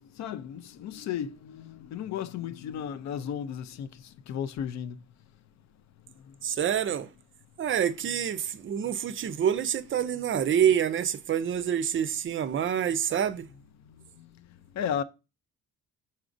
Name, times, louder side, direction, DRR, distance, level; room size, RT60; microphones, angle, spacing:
voice 1, 0.2-3.9 4.3-5.0 14.2-14.3 14.8-15.0, left 9 dB, 65° left, 0.5 m, -34 dB
voice 2, 6.4-7.1 7.6-13.5, right 9 dB, 40° right, 0.4 m, -27 dB
4.8 x 4.2 x 2.5 m
cardioid pair, 90°, 30 cm